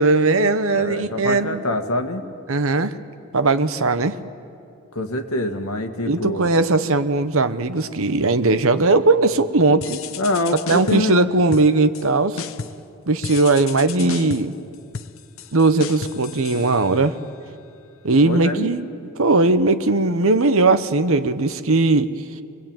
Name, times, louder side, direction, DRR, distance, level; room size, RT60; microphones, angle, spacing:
voice 1, 0.0-1.6 2.5-3.0 3.3-4.2 6.0-10.0 10.7-12.4 13.1-14.5 15.5-17.2 18.0-18.8 19.2-22.1, right 3 dB, 65° right, 11 dB, 1.0 m, -18 dB
voice 2, 0.7-2.2 4.9-6.5 10.2-11.2 18.2-18.7, left 1 dB, 85° left, 5 dB, 1.9 m, -25 dB
sound 1, 9.8-11.2 11.5-12.1 12.4-12.9 13.2-17.2, left 5 dB, 65° left, 0.7 m, -34 dB
27.0 x 21.0 x 9.0 m, 2.4 s
head